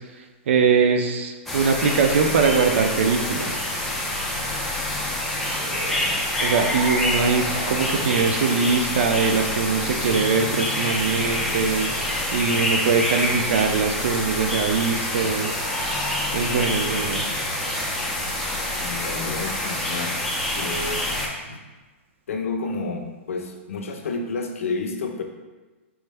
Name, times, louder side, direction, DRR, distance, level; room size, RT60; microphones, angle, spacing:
voice 1, 0.5-3.6 6.4-11.9 12.3-15.5 16.3-17.3, right 5 dB, 65° right, 5 dB, 0.5 m, -22 dB
sound 1, 1.5-21.3, left 1 dB, 5° left, 0.5 m, -26 dB
voice 2, 18.8-20.2 20.5-21.1 21.5-21.6 22.3-25.2, left 3 dB, 85° left, 4 dB, 0.5 m, -30 dB
4.5 x 2.1 x 3.3 m, 1.2 s
hypercardioid pair, 150°, 7 cm